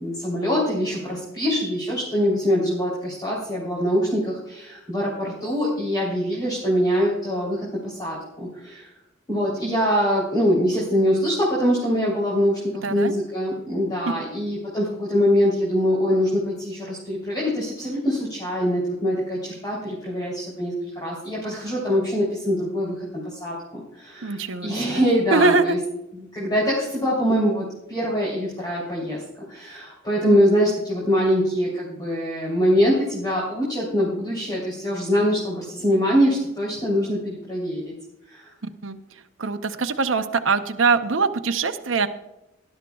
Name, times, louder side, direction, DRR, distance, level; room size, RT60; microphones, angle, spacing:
voice 1, 0.0-8.9 9.3-25.8 26.1-29.2 29.5-37.9 38.3-38.5, equal, 20° left, -6 dB, 3.4 m, -23 dB
voice 2, 12.8-13.1 24.2-25.0 25.3-25.6 38.8-39.0 39.4-42.1, right 4 dB, 70° right, 7 dB, 0.8 m, -22 dB
18.5 x 11.5 x 2.4 m, 0.91 s
head